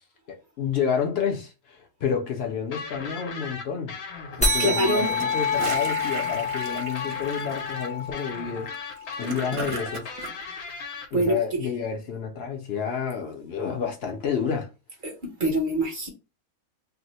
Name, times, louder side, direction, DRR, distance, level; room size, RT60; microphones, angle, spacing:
voice 1, 0.3-3.9 4.4-8.7 9.2-10.1 11.1-14.7, left 7 dB, 60° left, 0.7 m, -29 dB
sound 1, 2.7-11.1, left 5 dB, 85° left, 1.2 m, -37 dB
sound 2, 4.4-9.3, left 3 dB, 10° left, 0.3 m, -28 dB
voice 2, 4.6-5.1 11.1-11.4 15.0-16.1, right 1 dB, 45° right, 0.7 m, -24 dB
Gurgling / Toilet flush, 5.0-10.3, right 5 dB, 65° right, 1.0 m, -37 dB
2.7 x 2.1 x 4.0 m
omnidirectional pair, 1.5 m